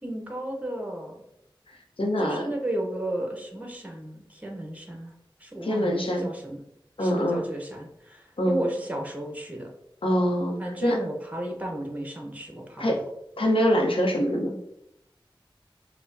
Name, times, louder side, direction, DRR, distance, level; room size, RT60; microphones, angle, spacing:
voice 1, 0.0-1.2 2.2-5.1 5.4-6.6 7.0-9.7 10.6-13.0, right 1 dB, 15° right, 1 dB, 0.8 m, -34 dB
voice 2, 2.0-2.5 5.6-6.3 7.0-7.5 8.4-8.6 10.0-11.0 12.8-13.0 13.4-14.6, equal, 75° left, 0 dB, 0.7 m, -24 dB
4.8 x 2.1 x 2.6 m, 0.79 s
wide cardioid pair, 45°, 9 cm